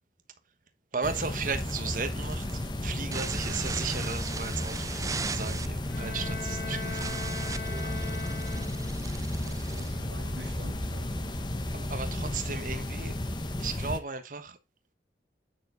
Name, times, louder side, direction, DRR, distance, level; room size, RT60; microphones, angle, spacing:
voice 1, 0.9-7.0 9.1-9.2 11.7-13.1 13.6-14.6, right 5 dB, 50° right, 1.2 m, -35 dB
sound 1, 1.0-14.0, left 1 dB, 25° left, 1.0 m, -33 dB
sound 2, 1.1-10.7, right 5 dB, 20° right, 0.4 m, -40 dB
Bowed string instrument, 5.9-9.1, left 3 dB, 70° left, 1.5 m, -40 dB
voice 2, 6.6-9.1 9.4-11.4, right 2 dB, 80° right, 1.2 m, -47 dB
9.2 x 6.8 x 3.9 m
head